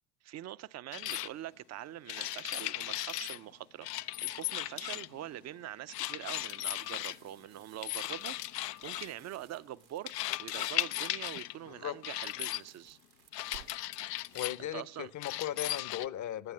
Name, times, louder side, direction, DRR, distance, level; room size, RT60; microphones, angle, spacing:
voice 1, 0.2-13.0 14.6-15.1, right 13 dB, 35° right, 0.5 m, -44 dB
sound 1, 0.9-1.3 2.1-3.4 3.8-5.2 5.9-7.2 7.8-9.1 10.1-11.5 12.0-12.6 13.3-14.6 15.2-16.1, left 15 dB, 80° left, 0.6 m, -36 dB
sound 2, 6.6-11.0 11.4-11.7 12.0-14.4, right 14 dB, 75° right, 1.2 m, -60 dB
voice 2, 11.7-12.0 14.3-16.5, left 11 dB, 40° left, 0.7 m, -37 dB
19.0 x 8.7 x 7.5 m
hypercardioid pair, 65°, 48 cm